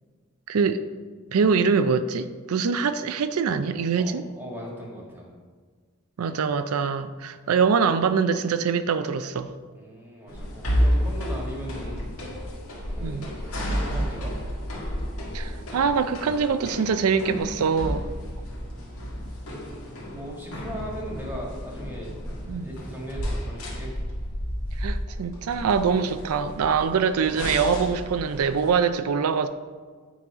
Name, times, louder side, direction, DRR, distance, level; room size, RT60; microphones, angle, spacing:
voice 1, 0.5-0.8 1.3-4.2 6.2-9.5 13.0-13.3 15.3-18.0 22.5-22.7 24.8-29.5, right 5 dB, 90° right, 11 dB, 0.4 m, -24 dB
voice 2, 3.9-5.3 9.7-12.1 12.9-13.4 13.9-14.3 18.7-19.1 20.0-22.1 22.6-23.9, equal, 10° right, -3 dB, 1.6 m, -38 dB
sound 1, 10.3-28.7, equal, 90° left, 1.7 m, -31 dB
9.2 x 4.1 x 4.9 m, 1.5 s
head